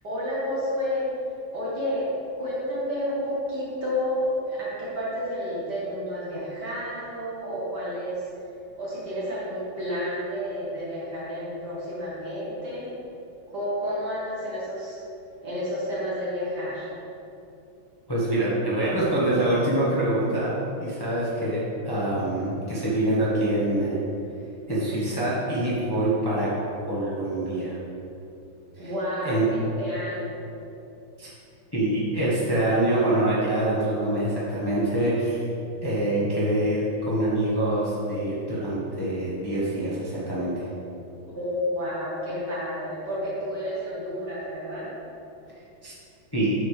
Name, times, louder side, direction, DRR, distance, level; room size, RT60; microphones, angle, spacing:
voice 1, 0.0-1.1 1.5-2.1 2.3-8.2 8.8-12.9 13.5-15.0 15.4-16.9 28.8-29.5 29.8-30.3 41.3-44.9, equal, 55° right, -9 dB, 2.2 m, -30 dB
voice 2, 18.1-20.5 20.8-24.0 24.7-26.5 26.9-27.8 28.8-28.9 29.2-29.4 31.2-31.3 31.7-35.4 35.8-40.7 45.8-45.9 46.3-46.5, right 1 dB, 15° left, -8 dB, 1.3 m, -25 dB
9.2 x 7.0 x 3.4 m, 2.7 s
omnidirectional pair, 2.2 m